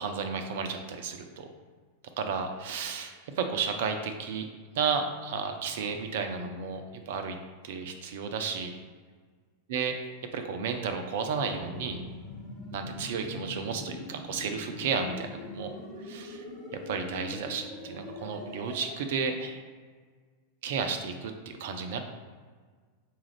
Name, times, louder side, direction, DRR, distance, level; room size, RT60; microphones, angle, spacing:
voice 1, 0.0-1.5 2.2-4.5 4.8-7.4 7.6-8.7 9.7-9.9 10.3-12.0 12.7-15.7 16.1-16.4 16.7-19.6 20.6-22.0, right 5 dB, 55° right, 6 dB, 0.4 m, -32 dB
sound 1, 11.5-18.9, left 2 dB, 30° left, 1.0 m, -43 dB
5.5 x 2.4 x 3.2 m, 1.6 s
figure-of-eight pair, 90°, 0 cm